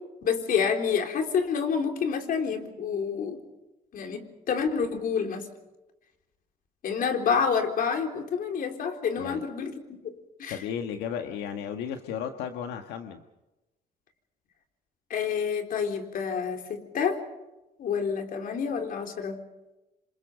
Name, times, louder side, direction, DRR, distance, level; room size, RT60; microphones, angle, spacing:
voice 1, 0.2-3.4 3.9-5.5 6.8-10.0 10.4-10.6 15.1-17.2 17.8-19.4, left 6 dB, 55° left, 4 dB, 3.9 m, -28 dB
voice 2, 10.5-13.2, left 8 dB, 90° left, 6 dB, 1.6 m, -34 dB
27.0 x 27.0 x 5.2 m, 1.0 s
cardioid pair, 110°, 17 cm